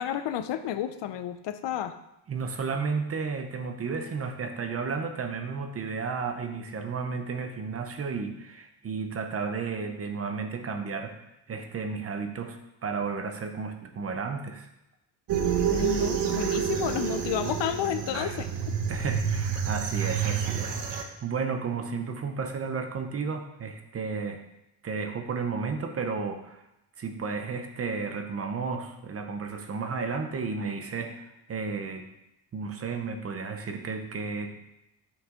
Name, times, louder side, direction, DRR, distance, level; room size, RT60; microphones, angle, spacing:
voice 1, 0.0-1.9 15.7-18.5, left 10 dB, 85° left, 10 dB, 0.6 m, -31 dB
voice 2, 2.3-11.1 11.5-14.7 18.1-18.4 18.9-24.4 24.8-26.6 27.0-32.1 32.5-34.5, right 5 dB, 35° right, 6 dB, 0.6 m, -33 dB
sound 1, 15.3-21.0, right 8 dB, 75° right, 0.9 m, -28 dB
6.2 x 6.1 x 3.7 m, 0.88 s
wide cardioid pair, 180°, 42 cm